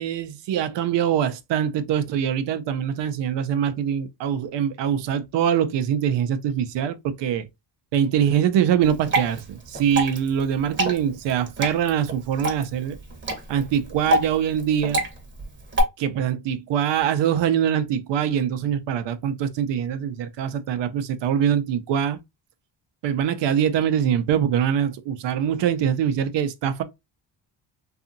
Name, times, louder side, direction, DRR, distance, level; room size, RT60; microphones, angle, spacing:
voice 1, 0.0-7.5 7.9-13.0 13.5-15.0 16.0-22.2 23.0-26.8, right 9 dB, 70° right, 0.6 m, -23 dB
Water / Drip, 8.8-15.8, right 1 dB, 25° right, 0.9 m, -28 dB
2.7 x 2.4 x 2.5 m
cardioid pair, 95°, 44 cm